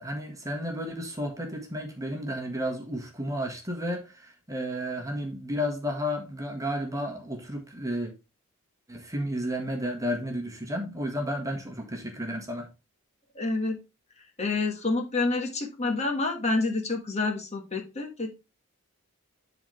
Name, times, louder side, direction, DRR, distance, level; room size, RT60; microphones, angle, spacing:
voice 1, 0.0-8.1 8.9-12.7, equal, 15° right, 1.5 m, -32 dB
voice 2, 13.3-13.8 14.4-18.3, left 3 dB, 30° left, 1.6 m, -28 dB
11.5 x 4.1 x 3.3 m
head